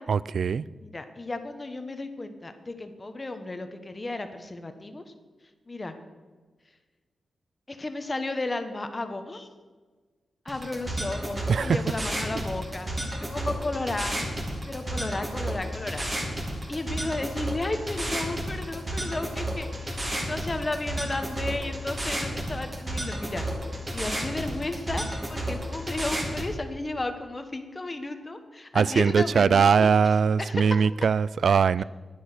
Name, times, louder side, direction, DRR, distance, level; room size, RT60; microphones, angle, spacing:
voice 1, 0.1-0.6 11.5-11.8 28.7-31.8, right 6 dB, 65° right, 20 dB, 0.3 m, -21 dB
voice 2, 0.8-5.0 5.7-5.9 7.7-9.5 10.4-12.9 13.2-14.2 14.7-16.1 16.7-20.0 20.2-23.5 23.9-25.0 25.3-30.9 31.8-31.9, left 2 dB, 25° left, 8 dB, 1.1 m, -33 dB
sound 1, 10.5-26.5, right 1 dB, 25° right, 2.7 m, -32 dB
10.5 x 10.0 x 6.7 m, 1.4 s
wide cardioid pair, 130°, 0 cm